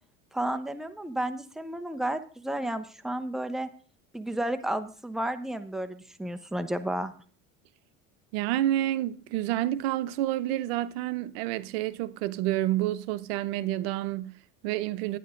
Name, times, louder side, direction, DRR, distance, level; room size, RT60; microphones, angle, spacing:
voice 1, 0.3-3.7 4.1-7.1, right 1 dB, ahead, 0.8 m, -32 dB
voice 2, 8.3-15.2, right 14 dB, 85° right, 0.8 m, -29 dB
11.5 x 9.2 x 3.8 m
supercardioid pair, 115°, 30 cm